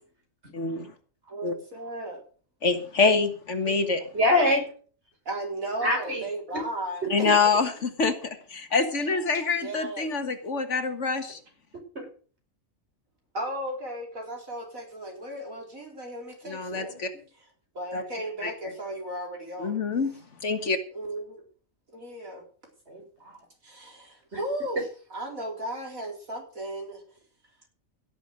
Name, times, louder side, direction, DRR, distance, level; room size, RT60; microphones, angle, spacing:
voice 1, 0.5-0.9 1.4-1.6 2.6-4.0 7.1-11.4 16.4-17.1 17.9-18.0 18.4-18.5 19.6-20.1 20.4-20.8, left 4 dB, 60° left, 8 dB, 1.9 m, -26 dB
voice 2, 1.3-2.2 5.2-7.3 9.6-10.1 13.3-16.9 17.7-19.8 20.9-21.4 21.9-22.4 23.6-24.8 25.1-27.0, right 1 dB, 85° right, 1 dB, 4.6 m, -35 dB
voice 3, 4.1-4.7 5.8-6.2 6.5-6.6 7.2-7.4 12.0-12.1 16.7-17.2 22.9-23.4 24.3-24.4, left 1 dB, 55° right, 2 dB, 5.4 m, -26 dB
16.5 x 7.6 x 6.4 m, 0.42 s
omnidirectional pair, 1.4 m